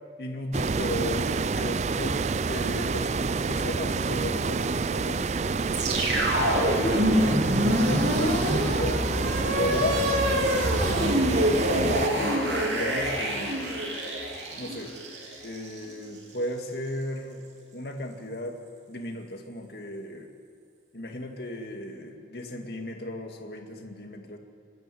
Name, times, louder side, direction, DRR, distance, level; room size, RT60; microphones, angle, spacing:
voice 1, 0.2-5.4 6.7-9.1 9.5-10.1 11.0-13.7 14.6-14.9 15.4-17.4 17.7-18.6 18.9-20.3 20.9-24.4, left 1 dB, 65° left, 3 dB, 2.2 m, -35 dB
sound 1, 0.5-12.1, right 4 dB, 40° right, 0.4 m, -28 dB
sound 2, 5.7-15.9, equal, 80° right, 3.7 m, -26 dB
26.5 x 12.0 x 9.4 m, 2.2 s
head